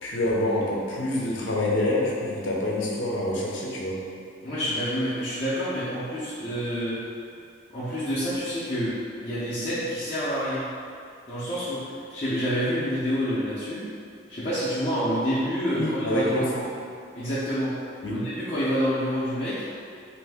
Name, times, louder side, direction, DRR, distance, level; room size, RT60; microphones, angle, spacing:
voice 1, 0.0-4.0 15.8-16.7 18.0-18.3, left 1 dB, 85° left, -3 dB, 0.6 m, -26 dB
voice 2, 4.4-7.0 7.7-8.9 9.2-10.6 11.3-13.8 14.3-16.5 17.1-17.7 18.1-19.6, equal, 30° left, -13 dB, 0.5 m, -28 dB
2.7 x 2.6 x 3.4 m, 2.3 s
head